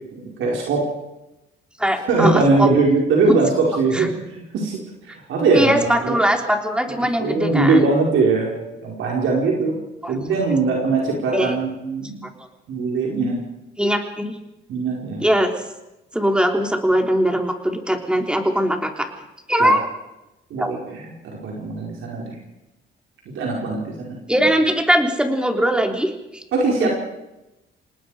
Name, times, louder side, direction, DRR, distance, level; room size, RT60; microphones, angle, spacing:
voice 1, 0.1-0.9 2.1-6.1 7.0-9.8 10.1-12.2 12.7-13.4 14.7-15.2 19.6-19.7 20.5-22.4 23.3-24.4 26.5-26.9, right 3 dB, 80° right, -2 dB, 5.0 m, -21 dB
voice 2, 1.8-2.7 3.9-4.1 5.5-7.8 10.0-10.1 11.3-11.5 13.8-14.3 15.2-15.5 16.1-19.1 19.5-19.8 20.6-20.7 24.3-26.4 26.8-26.9, equal, 5° right, 3 dB, 3.4 m, -20 dB
27.0 x 19.5 x 5.1 m, 0.95 s
cardioid pair, 90°, 20 cm